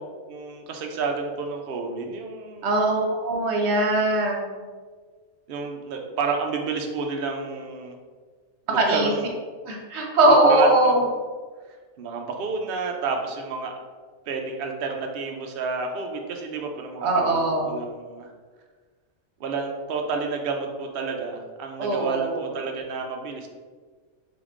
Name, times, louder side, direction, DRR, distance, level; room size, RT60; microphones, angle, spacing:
voice 1, 0.3-2.7 5.5-8.0 8.7-9.3 10.2-11.0 11.7-13.7 14.3-18.3 19.4-23.5, right 4 dB, 75° right, 2 dB, 0.5 m, -30 dB
voice 2, 2.6-4.4 8.7-9.1 9.7-11.0 17.0-17.7 21.8-22.4, right 2 dB, 55° right, 0 dB, 1.0 m, -20 dB
3.8 x 3.5 x 3.6 m, 1.5 s
omnidirectional pair, 1.5 m